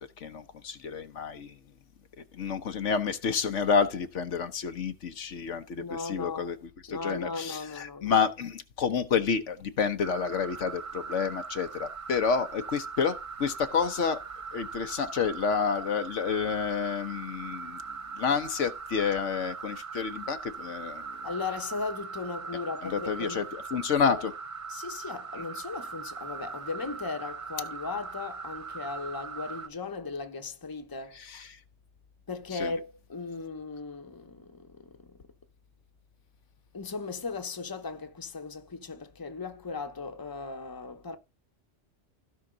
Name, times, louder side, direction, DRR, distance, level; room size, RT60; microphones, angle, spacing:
voice 1, 0.2-1.6 2.3-6.6 6.8-14.2 14.5-17.8 18.1-21.1 22.8-24.3 31.1-31.6 32.5-32.7, left 6 dB, 75° left, 1.2 m, -29 dB
voice 2, 5.8-6.5 6.9-8.1 21.2-23.4 24.7-31.2 32.3-35.2 36.7-41.2, left 4 dB, 20° left, 1.0 m, -37 dB
sound 1, 10.0-29.7, right 5 dB, 40° right, 0.5 m, -40 dB
16.0 x 5.7 x 3.9 m
omnidirectional pair, 1.2 m